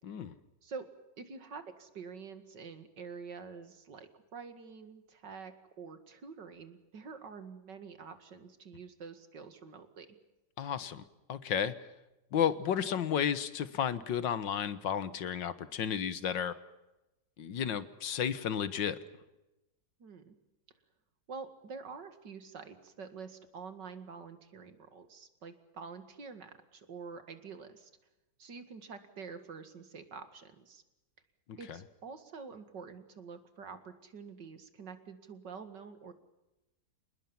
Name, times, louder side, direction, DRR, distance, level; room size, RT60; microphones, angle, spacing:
voice 1, 0.0-0.4 10.6-11.0 11.3-11.7 12.3-16.5 17.4-19.0 31.5-31.8, left 8 dB, 80° left, 14 dB, 1.9 m, -32 dB
voice 2, 1.2-10.1 20.0-20.3 21.3-27.9 28.4-30.8 31.6-36.1, right 5 dB, 70° right, 9 dB, 2.7 m, -47 dB
28.0 x 20.0 x 7.2 m, 0.97 s
omnidirectional pair, 2.0 m